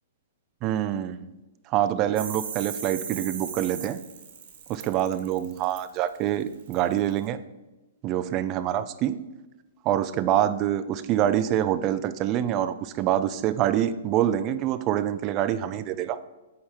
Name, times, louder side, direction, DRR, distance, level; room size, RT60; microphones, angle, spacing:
voice 1, 0.6-1.3 1.7-4.0 4.7-7.4 8.0-9.2 9.8-16.2, right 11 dB, 30° right, 13 dB, 0.3 m, -26 dB
sound 1, 2.2-7.3, right 7 dB, 60° right, 1.3 m, -37 dB
8.8 x 3.6 x 4.4 m, 1.1 s
hypercardioid pair, 155°, 0 cm